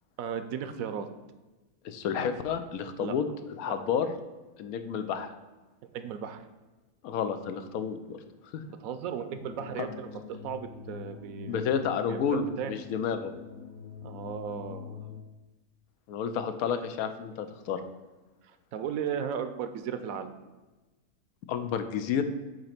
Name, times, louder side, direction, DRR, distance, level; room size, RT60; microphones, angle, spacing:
voice 1, 0.2-1.1 3.0-3.2 3.7-3.8 5.9-6.5 8.7-11.7 12.1-12.7 14.0-15.0 18.7-20.3, right 8 dB, 75° right, 9 dB, 1.0 m, -36 dB
voice 2, 1.8-3.3 3.6-4.1 4.6-5.3 7.0-8.2 8.5-8.6 9.8-9.9 11.5-13.3 16.1-17.8 21.5-22.2, left 7 dB, 85° left, 8 dB, 1.1 m, -30 dB
sound 1, 9.3-15.2, left 8 dB, 50° left, 0.6 m, -44 dB
7.6 x 3.0 x 5.8 m, 1.1 s
omnidirectional pair, 1.5 m